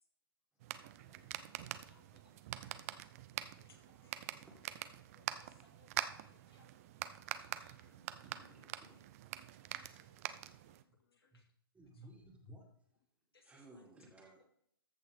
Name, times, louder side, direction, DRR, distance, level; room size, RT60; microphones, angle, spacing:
sound 1, 0.6-10.8, right 13 dB, 40° right, 0.6 m, -45 dB
voice 1, 1.0-2.2 2.5-3.9 4.2-4.5 4.9-5.6 6.6-6.8 10.4-11.4, left 11 dB, 45° left, 10 dB, 0.6 m, -76 dB
voice 2, 1.6-2.2 2.6-2.8 3.6-4.8 5.4-6.7 7.4-8.8 9.7-10.1 11.1-11.4 11.9-12.1 13.3-13.9 14.4-14.5, left 3 dB, 90° left, 1 dB, 2.6 m, -70 dB
voice 3, 7.7-9.0 11.3-11.4 11.7-12.7 13.4-14.4, right 1 dB, 10° right, 1 dB, 2.0 m, -58 dB
14.0 x 6.5 x 3.5 m, 0.69 s
hypercardioid pair, 135°, 12 cm